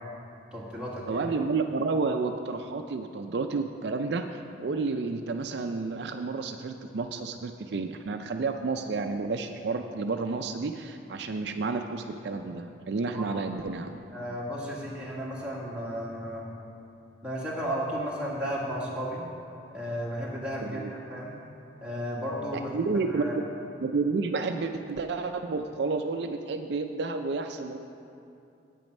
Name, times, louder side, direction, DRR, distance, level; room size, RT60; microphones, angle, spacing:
voice 1, 0.5-1.3 13.1-13.3 14.1-16.4 17.2-19.2 19.7-21.4 21.8-22.7 23.1-23.3, equal, 5° right, -6 dB, 1.8 m, -34 dB
voice 2, 1.1-13.9 20.6-20.9 22.5-23.2 23.8-27.8, right 4 dB, 65° right, 6 dB, 0.4 m, -31 dB
9.1 x 8.6 x 5.3 m, 2.7 s
head